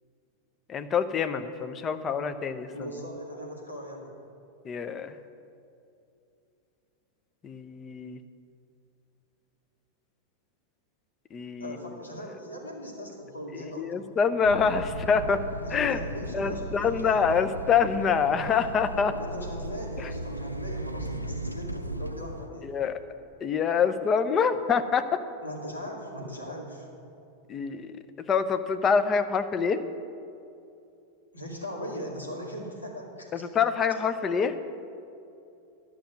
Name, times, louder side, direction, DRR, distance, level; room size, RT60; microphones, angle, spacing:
voice 1, 0.7-2.7 4.6-5.1 7.4-8.2 11.3-11.8 13.8-15.4 15.7-16.0 16.3-19.1 20.0-20.1 22.6-23.0 23.4-25.0 27.5-28.0 28.3-29.8 33.3-34.6, left 6 dB, 25° left, 10 dB, 0.6 m, -26 dB
voice 2, 2.7-4.1 11.6-14.0 15.6-17.2 19.2-22.7 25.4-26.9 31.3-33.4, equal, 80° left, -1 dB, 2.3 m, -39 dB
sound 1, 14.4-22.5, right 1 dB, 90° right, 0.5 m, -36 dB
11.5 x 6.1 x 8.3 m, 2.6 s
figure-of-eight pair, 90°, 0 cm